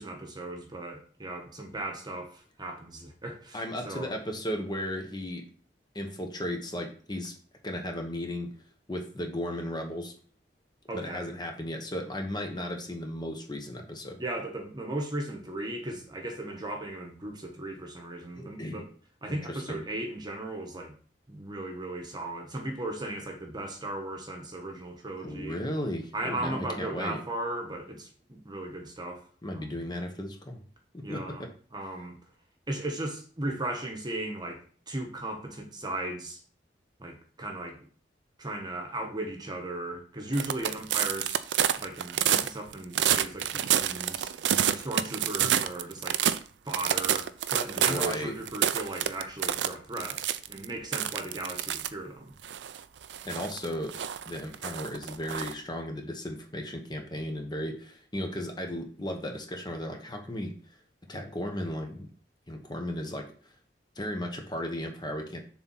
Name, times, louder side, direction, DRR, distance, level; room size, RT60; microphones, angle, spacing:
voice 1, 0.0-4.1 10.9-11.3 14.2-18.9 19.2-20.9 21.3-25.6 26.1-29.2 29.5-29.8 31.0-31.4 31.7-32.2 32.7-36.4 37.0-37.8 38.4-41.4 41.8-44.3 44.6-46.2 46.6-52.4, right 1 dB, 25° right, 1.2 m, -36 dB
voice 2, 3.5-5.4 5.9-7.3 7.6-8.5 8.9-10.1 10.9-14.2 18.3-18.8 19.3-19.8 25.2-27.2 29.4-30.6 30.9-31.5 47.8-48.3 53.2-53.9 54.3-60.5 61.1-62.1 62.5-63.2 64.0-65.4, left 1 dB, 25° left, 1.2 m, -35 dB
sound 1, 40.3-46.4 46.7-48.2 48.5-50.6 50.9-51.9 52.4-55.5, right 10 dB, 80° right, 0.5 m, -28 dB
6.9 x 4.1 x 5.6 m
head